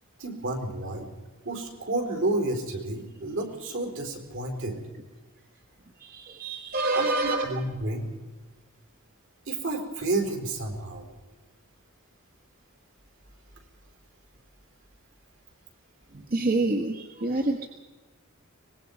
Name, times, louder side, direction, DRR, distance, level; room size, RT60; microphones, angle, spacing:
voice 1, 0.2-1.1 1.4-4.8 6.9-7.1 7.4-8.1 9.5-11.1, right 2 dB, 70° right, 3 dB, 4.3 m, -30 dB
voice 2, 6.0-7.4 16.1-17.7, right 2 dB, 45° right, 3 dB, 1.4 m, -27 dB
24.0 x 20.0 x 5.4 m, 1.3 s
head